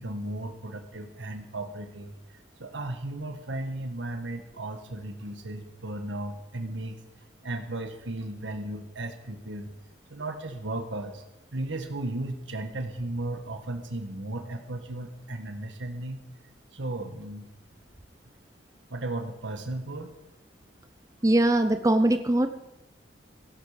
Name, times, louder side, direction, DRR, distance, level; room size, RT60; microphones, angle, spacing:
voice 1, 0.0-2.1 2.6-7.0 7.4-9.7 10.1-11.2 11.5-16.2 16.7-17.5 18.9-20.1, right 2 dB, 80° right, 7 dB, 1.5 m, -35 dB
voice 2, 21.2-22.5, right 1 dB, 15° right, 8 dB, 0.6 m, -21 dB
17.0 x 11.0 x 5.0 m, 0.96 s
head